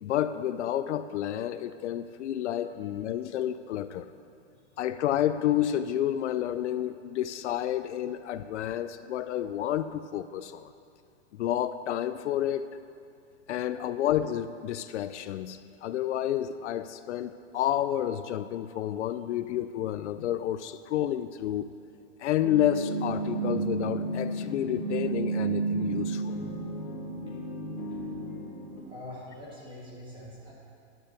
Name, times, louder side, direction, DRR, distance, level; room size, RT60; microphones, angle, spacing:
voice 1, 0.0-4.1 4.8-10.7 11.3-12.7 13.5-21.7 22.2-26.4, left 11 dB, 75° left, 12 dB, 0.5 m, -30 dB
sound 1, 22.4-28.8, right 3 dB, 15° left, 0.5 m, -32 dB
voice 2, 28.8-30.5, left 1 dB, 15° right, -5 dB, 1.8 m, -44 dB
10.5 x 6.6 x 6.5 m, 2.4 s
supercardioid pair, 180°, 35 cm